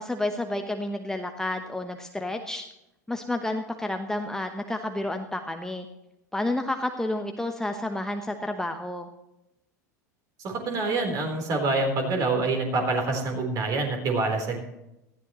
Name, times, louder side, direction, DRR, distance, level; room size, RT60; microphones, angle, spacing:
voice 1, 0.0-2.6 3.1-5.9 6.3-9.1, left 1 dB, 5° left, 5 dB, 1.0 m, -30 dB
voice 2, 10.4-14.6, right 3 dB, 35° right, 3 dB, 4.0 m, -26 dB
18.5 x 14.5 x 3.1 m, 0.88 s
figure-of-eight pair, 80°, 10 cm